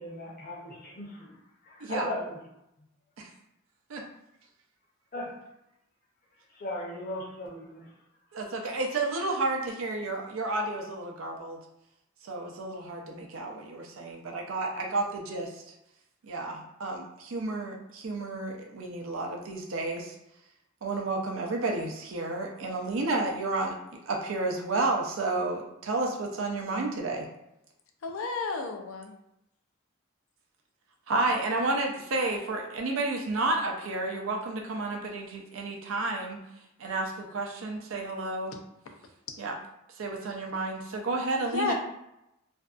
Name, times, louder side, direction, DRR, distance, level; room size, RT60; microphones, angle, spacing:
voice 1, 0.0-1.3 1.6-2.4 5.1-5.4 6.5-7.9, left 1 dB, 45° left, -2 dB, 0.7 m, -37 dB
voice 2, 1.8-2.1 3.2-3.3 3.9-4.0 8.3-11.6 12.2-15.6 16.2-20.1 20.8-23.8 24.1-27.3 31.1-36.4 36.8-38.5 39.4-39.5 40.0-41.7, right 2 dB, 80° right, 2 dB, 0.5 m, -31 dB
voice 3, 28.0-29.1 41.5-41.7, left 4 dB, 85° left, 4 dB, 0.4 m, -31 dB
2.5 x 2.2 x 2.4 m, 0.85 s
head